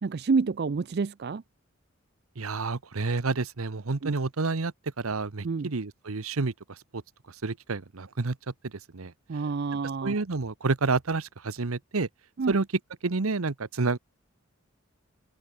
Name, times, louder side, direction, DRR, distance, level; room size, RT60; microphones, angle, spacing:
voice 1, 0.0-1.4 4.0-4.1 5.4-5.7 9.3-10.2 12.4-12.6, right 4 dB, 50° right, 0.4 m, -28 dB
voice 2, 2.4-6.5 6.9-7.0 7.4-8.4 8.9-9.1 10.0-12.1 12.5-12.7 13.0-14.0, right 3 dB, 90° right, 1.0 m, -29 dB
open air
head